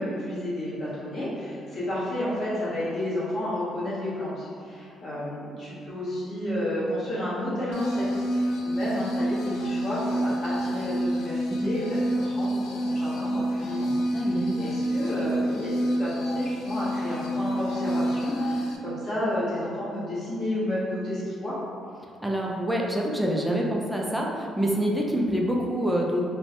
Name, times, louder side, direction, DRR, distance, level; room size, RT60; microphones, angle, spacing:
voice 1, 0.0-21.5, left 1 dB, 40° left, -10 dB, 1.1 m, -31 dB
sound 1, 7.7-18.8, equal, 75° left, 0.3 m, -28 dB
voice 2, 14.1-14.7 22.2-26.3, equal, 5° right, -2 dB, 0.3 m, -26 dB
3.2 x 2.1 x 2.8 m, 2.3 s
cardioid pair, 145°, 0 cm